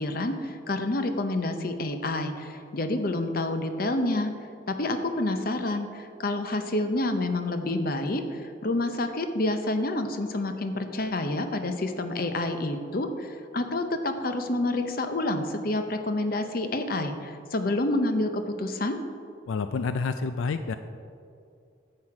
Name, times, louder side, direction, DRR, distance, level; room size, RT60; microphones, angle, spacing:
voice 1, 0.0-4.3 4.7-19.0, left 2 dB, 50° left, 7 dB, 0.7 m, -28 dB
voice 2, 19.5-20.7, left 4 dB, 85° left, 10 dB, 0.4 m, -28 dB
10.5 x 7.7 x 4.9 m, 2.4 s
head